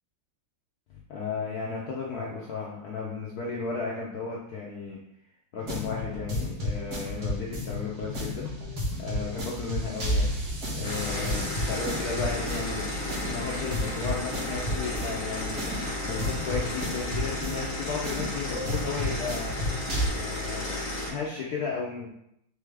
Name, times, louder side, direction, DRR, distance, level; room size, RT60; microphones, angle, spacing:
voice 1, 0.9-5.0 5.5-8.5 9.0-10.3 10.7-12.9 13.3-15.6 16.0-19.5 20.1-20.7 21.1-22.1, left 5 dB, 75° left, -4 dB, 0.8 m, -34 dB
sound 1, 5.6-20.1, left 1 dB, 50° right, 1.6 m, -32 dB
sound 2, 10.8-21.1, left 2 dB, 45° left, 1.2 m, -33 dB
4.2 x 3.3 x 3.4 m, 0.77 s
omnidirectional pair, 2.4 m